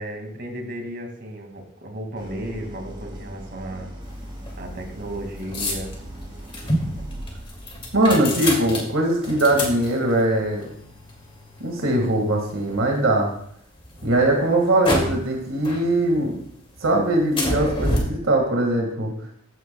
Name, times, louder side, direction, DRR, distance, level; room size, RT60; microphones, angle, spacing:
voice 1, 0.0-3.9 4.6-5.9, right 1 dB, 50° right, 3 dB, 2.2 m, -34 dB
Idling, 2.2-8.2, equal, 20° right, 2.2 m, -39 dB
sound 1, 4.0-13.2 13.7-15.4 15.6-16.4 16.7-18.0, left 1 dB, 25° left, 2.3 m, -30 dB
voice 2, 7.9-10.7 11.6-13.3 14.0-16.4 16.8-19.1, right 1 dB, 75° right, 1 dB, 1.9 m, -21 dB
14.5 x 9.4 x 2.3 m, 0.68 s
head